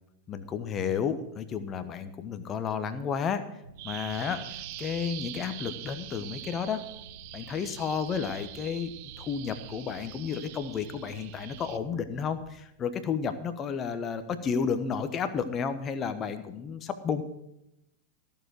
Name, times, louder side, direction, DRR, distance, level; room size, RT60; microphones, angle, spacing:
voice 1, 0.3-3.4 3.8-4.4 4.8-6.8 7.3-8.9 9.2-17.2, left 6 dB, 25° left, 10 dB, 1.2 m, -32 dB
sound 1, 3.6-12.5, right 2 dB, 85° right, 1.2 m, -51 dB
Bird vocalization bird call bird song, 3.8-11.8, right 15 dB, 45° right, 0.6 m, -44 dB
15.0 x 7.0 x 6.3 m, 0.85 s
figure-of-eight pair, 90°, 0 cm